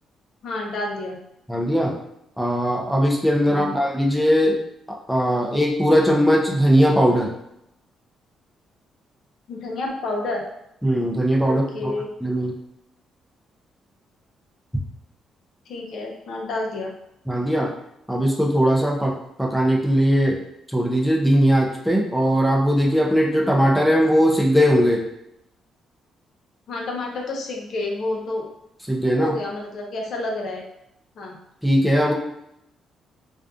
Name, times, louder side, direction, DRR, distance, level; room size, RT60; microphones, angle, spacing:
voice 1, 0.4-1.2 3.5-3.8 9.5-10.4 11.4-12.1 15.7-16.9 26.7-28.5 29.2-30.6 31.2-31.4, left 2 dB, 65° left, 0 dB, 0.5 m, -29 dB
voice 2, 1.5-1.9 2.4-4.6 5.1-7.3 10.8-11.9 12.2-12.5 17.3-17.7 18.1-19.1 19.4-20.4 20.7-25.0 28.9-29.3 31.6-32.1, equal, ahead, -1 dB, 0.5 m, -19 dB
2.5 x 2.3 x 2.4 m, 0.79 s
cardioid pair, 90°, 0 cm